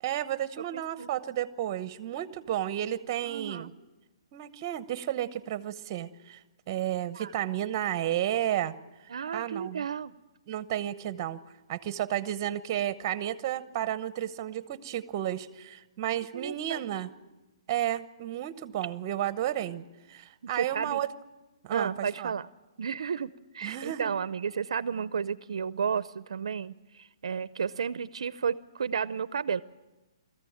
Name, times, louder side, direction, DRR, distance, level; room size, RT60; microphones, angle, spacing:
voice 1, 0.0-3.7 4.3-6.4 6.7-8.7 9.3-9.9 10.5-11.4 11.7-17.1 17.7-21.1 21.6-22.3 23.6-24.1, right 12 dB, 30° right, 14 dB, 0.9 m, -32 dB
voice 2, 0.7-1.1 3.3-3.7 7.1-7.3 9.1-10.1 16.3-16.9 20.5-21.0 21.7-22.5 22.8-29.6, right 6 dB, 75° right, 17 dB, 0.6 m, -32 dB
21.0 x 14.5 x 8.7 m, 1.1 s
hypercardioid pair, 160°, 3 cm